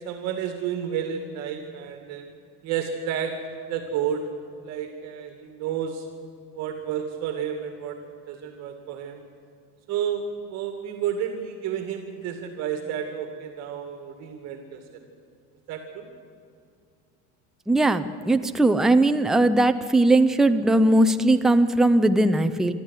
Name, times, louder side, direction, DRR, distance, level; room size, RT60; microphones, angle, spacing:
voice 1, 0.0-2.3 2.6-3.3 3.7-6.1 6.5-8.0 8.3-9.2 9.9-14.8 15.7-16.1, right 8 dB, 60° right, 5 dB, 2.3 m, -31 dB
voice 2, 17.7-22.7, right 2 dB, ahead, 8 dB, 0.5 m, -19 dB
24.5 x 13.0 x 8.3 m, 2.2 s
cardioid pair, 160°, 30 cm